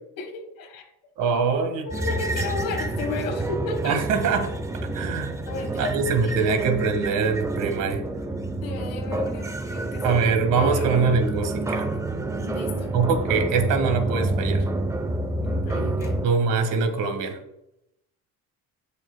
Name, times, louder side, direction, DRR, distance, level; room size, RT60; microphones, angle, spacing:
voice 1, 0.2-0.9 1.9-4.0 5.5-6.6 8.6-10.2 10.6-11.0 12.4-12.9 15.4-16.2, left 3 dB, 80° left, 3 dB, 1.6 m, -34 dB
voice 2, 1.2-1.9 3.8-4.5 4.9-5.4 5.8-8.0 10.0-11.9 12.9-14.6 16.2-17.4, right 5 dB, 70° right, 6 dB, 1.7 m, -23 dB
sound 1, 1.9-16.3, right 2 dB, 10° right, 0.5 m, -28 dB
17.0 x 6.3 x 2.2 m, 0.82 s
cardioid pair, 140°, 33 cm